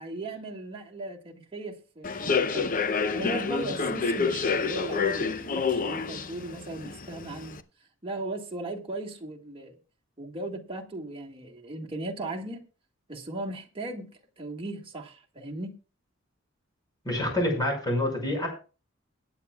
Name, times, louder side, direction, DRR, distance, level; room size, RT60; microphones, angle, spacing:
voice 1, 0.0-2.7 3.1-7.6 8.0-9.8 10.2-12.6 13.1-14.1 14.4-15.7, right 2 dB, 25° right, 1.8 m, -37 dB
Human voice / Subway metro underground, 2.0-7.6, left 5 dB, 40° left, 0.7 m, -28 dB
voice 2, 17.0-18.5, left 1 dB, 20° left, 5.7 m, -27 dB
21.5 x 9.3 x 2.3 m
head